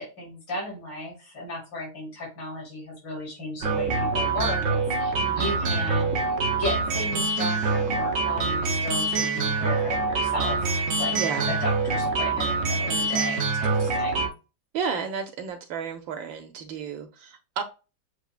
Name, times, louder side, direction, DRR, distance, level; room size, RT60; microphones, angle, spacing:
voice 1, 0.0-6.3 6.6-14.3, left 1 dB, 65° left, 3.9 m, -34 dB
sound 1, 3.6-14.3, right 3 dB, 60° right, 0.8 m, -25 dB
voice 2, 5.1-5.5 11.1-11.5 14.7-17.6, right 6 dB, 75° right, 1.4 m, -32 dB
7.9 x 2.7 x 2.4 m
omnidirectional pair, 2.2 m